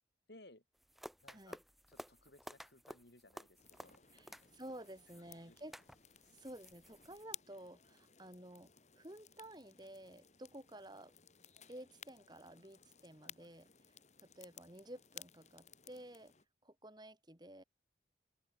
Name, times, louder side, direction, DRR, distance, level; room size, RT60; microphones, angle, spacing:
voice 1, 0.3-0.6 1.2-1.6 1.9-4.0 5.5-5.6 13.2-13.3, left 2 dB, 65° left, 3.5 m, -61 dB
sound 1, 0.7-7.2, equal, ahead, 2.7 m, -55 dB
sound 2, 3.6-16.4, left 9 dB, 40° left, 3.2 m, -58 dB
voice 2, 4.1-5.8 6.3-8.7 9.0-11.1 11.7-13.7 14.2-16.3 16.6-17.6, right 1 dB, 25° right, 4.8 m, -53 dB
open air
head